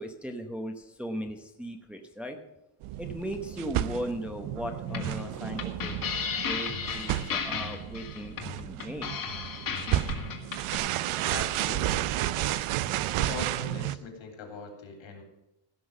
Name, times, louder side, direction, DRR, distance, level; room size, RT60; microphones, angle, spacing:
voice 1, 0.0-2.4 3.0-5.9 6.4-9.1, equal, ahead, 3 dB, 0.9 m, -37 dB
sound 1, 2.8-14.0, right 13 dB, 80° right, 0.7 m, -32 dB
sound 2, 4.9-10.8, left 6 dB, 40° left, 1.9 m, -34 dB
voice 2, 11.3-12.0 13.2-15.2, left 5 dB, 65° left, 4 dB, 3.5 m, -41 dB
16.5 x 6.2 x 7.1 m, 0.88 s
cardioid pair, 170°, 50 cm